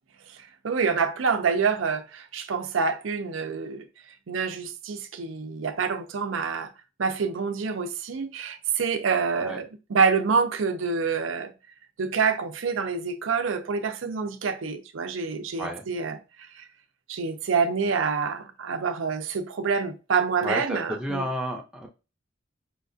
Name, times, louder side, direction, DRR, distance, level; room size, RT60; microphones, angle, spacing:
voice 1, 0.6-3.8 4.3-6.7 7.0-11.5 12.0-16.2 16.5-16.6 17.1-21.2, right 5 dB, 90° right, 0.5 m, -27 dB
voice 2, 20.4-21.9, equal, 5° right, 0.6 m, -31 dB
5.0 x 2.4 x 2.5 m
head